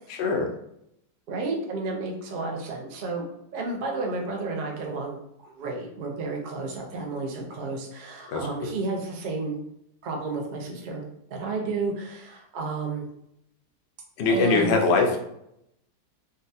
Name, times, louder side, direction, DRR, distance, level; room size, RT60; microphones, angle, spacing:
voice 1, 1.3-3.3 3.5-9.6 10.0-11.0 11.3-13.1 14.3-14.8, right 3 dB, 80° right, 0 dB, 0.4 m, -31 dB
voice 2, 14.2-15.2, left 3 dB, 65° left, 2 dB, 0.6 m, -21 dB
3.8 x 2.2 x 2.7 m, 0.77 s
omnidirectional pair, 1.7 m